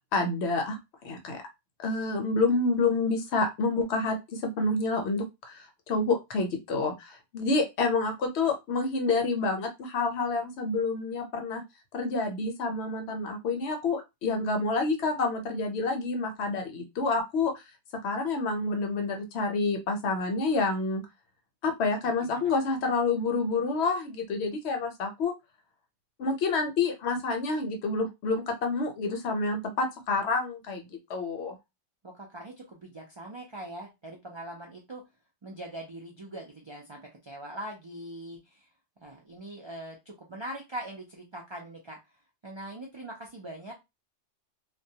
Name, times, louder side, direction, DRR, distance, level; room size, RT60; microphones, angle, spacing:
voice 1, 0.1-0.8 1.0-1.4 1.8-11.6 11.9-17.6 18.0-21.0 21.6-25.3 26.2-31.6, left 3 dB, 65° left, 4 dB, 0.8 m, -28 dB
voice 2, 22.2-22.5 32.0-35.0 35.4-38.7 39.0-42.0 42.4-43.7, right 1 dB, 50° right, -1 dB, 0.3 m, -42 dB
2.2 x 2.2 x 2.7 m, 0.22 s
omnidirectional pair, 1.2 m